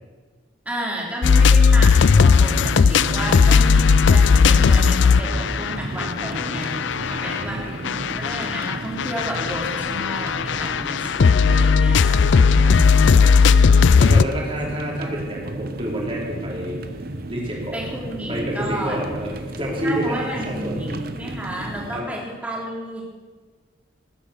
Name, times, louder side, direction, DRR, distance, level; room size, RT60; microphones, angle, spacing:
voice 1, 0.7-13.2 17.7-19.1 19.8-23.0, equal, 5° right, -3 dB, 3.3 m, -32 dB
sound 1, 1.2-7.4 7.8-14.2, left 5 dB, 70° left, 0.4 m, -16 dB
voice 2, 1.4-1.9 7.1-7.8 12.6-13.5 14.0-17.0 17.3-17.8 18.3-20.8 21.2-21.3 21.9-22.0, equal, 30° right, -2 dB, 3.7 m, -29 dB
sound 2, 2.3-22.0, right 2 dB, 50° right, 0.9 m, -34 dB
19.0 x 10.0 x 6.6 m, 1.4 s
head